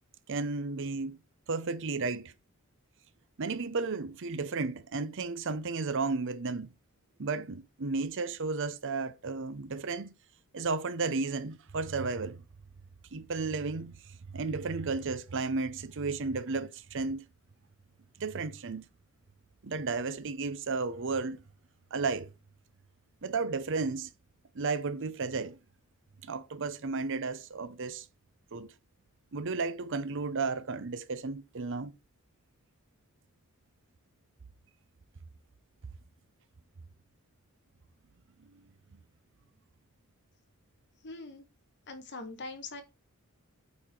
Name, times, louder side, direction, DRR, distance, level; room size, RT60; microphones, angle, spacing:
voice 1, 0.3-1.2 1.5-2.3 3.4-6.7 7.2-10.1 10.5-12.4 13.1-14.0 14.3-17.3 18.2-18.9 19.6-21.4 21.9-22.3 23.2-24.1 24.5-25.6 26.2-28.1 28.5-28.7 29.3-31.9, right 4 dB, 60° right, 0.7 m, -33 dB
voice 2, 41.0-41.5 41.9-42.8, left 3 dB, 50° left, 1.5 m, -42 dB
8.5 x 4.3 x 4.4 m
head